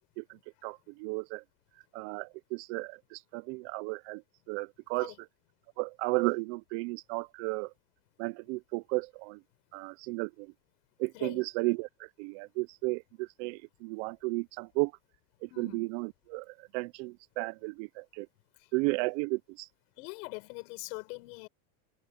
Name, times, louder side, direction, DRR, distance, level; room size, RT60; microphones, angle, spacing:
voice 1, 0.6-1.4 1.9-4.2 4.5-5.1 5.8-7.7 8.2-9.4 9.7-10.5 11.0-11.9 12.2-14.9 15.4-18.3 18.7-19.7, right 26 dB, 50° right, 0.5 m, -34 dB
voice 2, 15.5-15.8 20.0-21.5, left 28 dB, 70° left, 7.1 m, -42 dB
supercardioid pair, 160°, 45 cm